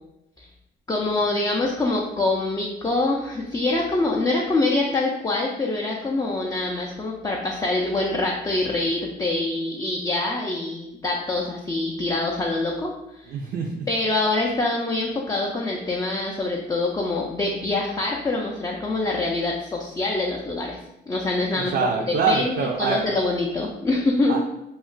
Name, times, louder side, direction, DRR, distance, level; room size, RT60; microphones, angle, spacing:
voice 1, 0.9-12.9 13.2-13.3 13.9-20.8 21.1-21.7 22.1-24.4, left 2 dB, 20° left, -2 dB, 0.4 m, -25 dB
voice 2, 13.3-13.8 21.5-23.0 24.3-24.4, right 5 dB, 55° right, 0 dB, 0.4 m, -24 dB
2.3 x 2.1 x 3.8 m, 0.86 s
cardioid pair, 90°, 20 cm